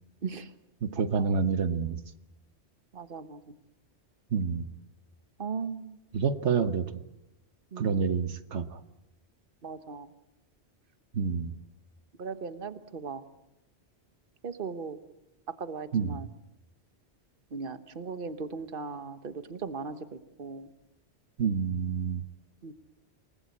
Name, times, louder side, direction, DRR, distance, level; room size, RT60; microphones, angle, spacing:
voice 1, 0.8-2.0 4.3-4.7 6.1-6.9 7.8-8.8 11.1-11.5 15.9-16.2 21.4-22.2, right 6 dB, 90° right, 11 dB, 1.4 m, -28 dB
voice 2, 2.9-3.4 5.4-6.0 7.7-8.0 9.6-10.1 12.2-13.2 14.4-15.0 15.6-16.3 17.5-20.0 20.4-20.7 22.6-22.7, right 5 dB, 50° right, 11 dB, 1.4 m, -37 dB
28.0 x 19.5 x 8.6 m, 0.90 s
omnidirectional pair, 1.1 m